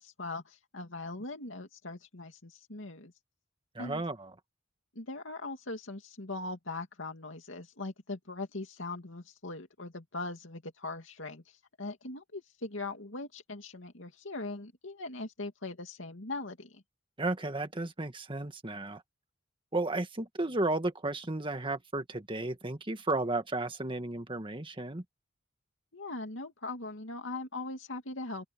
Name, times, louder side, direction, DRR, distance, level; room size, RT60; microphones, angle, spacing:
voice 1, 0.0-3.1 3.8-4.0 4.9-11.4 11.8-16.8 25.9-28.5, left 2 dB, 80° left, 2.6 m, -40 dB
voice 2, 3.8-4.3 17.2-19.0 19.7-25.0, right 2 dB, 25° right, 1.8 m, -33 dB
open air
head